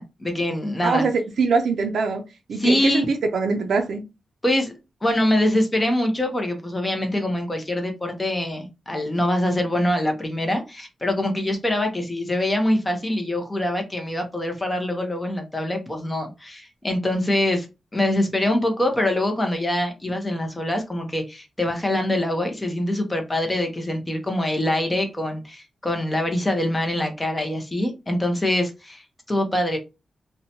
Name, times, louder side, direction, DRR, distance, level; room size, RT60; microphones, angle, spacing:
voice 1, 0.0-1.1 2.6-3.1 4.4-4.7 5.0-17.7 17.9-29.8, left 1 dB, 15° left, 0.7 m, -24 dB
voice 2, 0.8-2.2 2.5-4.0, right 4 dB, 75° right, 0.4 m, -23 dB
2.7 x 2.1 x 2.7 m
wide cardioid pair, 130°, 0 cm